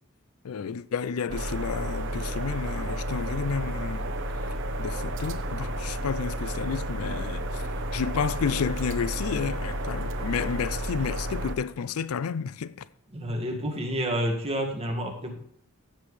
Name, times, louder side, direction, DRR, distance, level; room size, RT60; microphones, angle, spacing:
voice 1, 0.4-4.1 4.8-7.6 7.9-12.8, left 6 dB, 75° left, 0.4 m, -31 dB
sound 1, 1.3-11.6, right 1 dB, 60° right, 1.0 m, -31 dB
voice 2, 13.1-15.4, equal, 30° right, 1.9 m, -29 dB
15.0 x 7.6 x 3.3 m
head